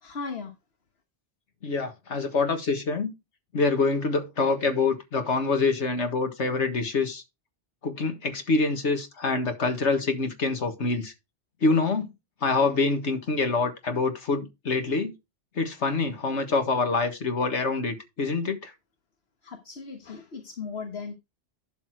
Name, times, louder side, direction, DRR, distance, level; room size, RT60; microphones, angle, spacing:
voice 1, 0.0-0.5 19.4-21.1, left 5 dB, 60° left, 1.5 m, -37 dB
voice 2, 1.6-3.1 3.5-7.2 7.8-11.1 11.6-12.1 12.4-15.1 15.6-18.7, left 3 dB, 80° left, 1.8 m, -26 dB
12.0 x 4.2 x 4.7 m
omnidirectional pair, 1.2 m